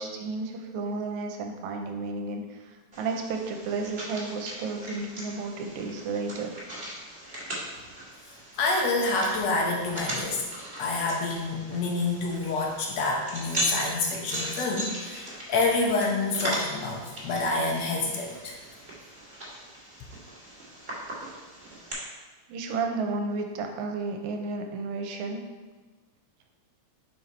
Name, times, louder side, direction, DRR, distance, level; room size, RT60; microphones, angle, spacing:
voice 1, 0.0-6.5 22.5-25.4, right 3 dB, 85° right, 3 dB, 2.1 m, -32 dB
sound 1, 2.9-21.9, right 1 dB, 20° right, 1.6 m, -38 dB
voice 2, 8.6-10.4 10.8-18.6, left 3 dB, 70° left, 0 dB, 2.0 m, -27 dB
5.7 x 5.4 x 4.4 m, 1.3 s
omnidirectional pair, 3.3 m